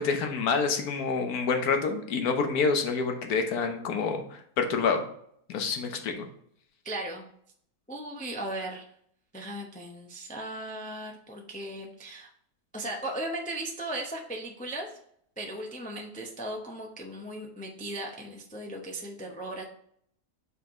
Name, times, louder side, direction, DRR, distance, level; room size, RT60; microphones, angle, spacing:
voice 1, 0.0-5.0 5.5-6.3, left 5 dB, 70° left, 5 dB, 1.3 m, -27 dB
voice 2, 6.8-7.3 7.9-8.8 9.3-12.3 12.7-14.9 15.4-19.6, right 1 dB, 15° left, 1 dB, 0.3 m, -37 dB
5.6 x 4.6 x 3.6 m, 0.67 s
omnidirectional pair, 1.7 m